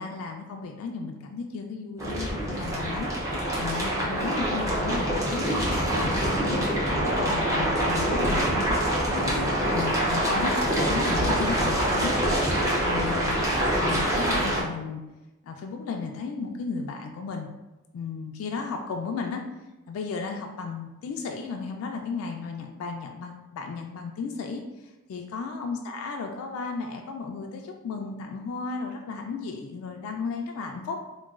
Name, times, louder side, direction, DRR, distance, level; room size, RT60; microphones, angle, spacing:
voice 1, 0.0-3.3 3.6-6.4 6.9-12.2 12.4-13.4 13.8-15.0 15.4-17.5 17.9-19.4 19.9-24.6 25.1-31.0, left 4 dB, 80° left, 3 dB, 0.3 m, -34 dB
sound 1, 2.0-14.6, right 1 dB, 15° right, 0.5 m, -25 dB
3.8 x 2.1 x 2.3 m, 1.1 s
head